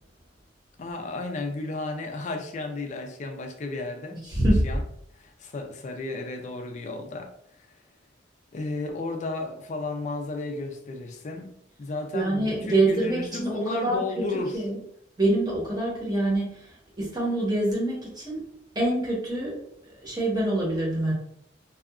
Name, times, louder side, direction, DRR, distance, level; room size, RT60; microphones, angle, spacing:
voice 1, 0.8-4.2 4.6-4.8 5.1-7.3 7.6-7.8 8.5-14.6, left 2 dB, 40° left, 5 dB, 0.3 m, -33 dB
voice 2, 4.1-4.7 12.1-14.2 14.5-14.7 15.2-18.5 18.7-21.1, right 1 dB, 20° right, -4 dB, 0.9 m, -26 dB
2.7 x 2.3 x 2.4 m, 0.71 s
head